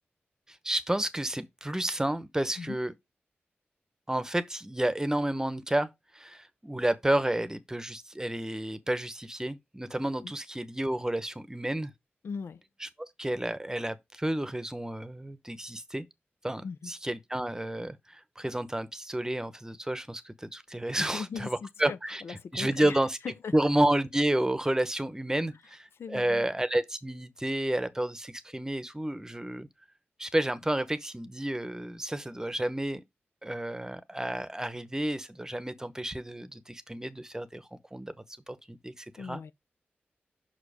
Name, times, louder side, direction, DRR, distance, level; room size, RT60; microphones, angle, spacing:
voice 1, 0.5-2.9 4.1-11.9 12.8-12.9 13.2-16.0 16.4-23.2 23.5-29.7 30.2-33.0 33.4-38.1 38.5-39.4, right 1 dB, 15° right, 0.9 m, -31 dB
voice 2, 12.2-12.6 16.6-16.9 20.9-23.0 23.2-23.5 25.5-25.6 26.0-26.5 39.2-39.5, left 5 dB, 80° left, 0.6 m, -39 dB
5.8 x 4.9 x 5.0 m
cardioid pair, 55°, 4 cm